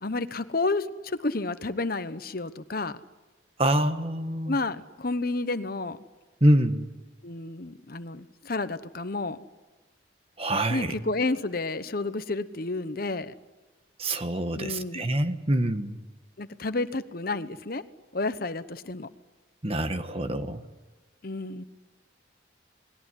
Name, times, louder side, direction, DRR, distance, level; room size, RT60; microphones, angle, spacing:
voice 1, 0.0-3.0 4.5-6.0 7.2-9.4 10.7-13.3 14.6-15.0 16.4-17.8 18.1-19.1 21.2-21.6, left 3 dB, 50° left, 12 dB, 1.0 m, -30 dB
voice 2, 3.6-4.6 6.4-6.9 10.4-10.9 14.0-16.0 19.6-20.6, right 1 dB, 30° right, 9 dB, 1.4 m, -25 dB
29.0 x 20.5 x 9.9 m, 1.2 s
head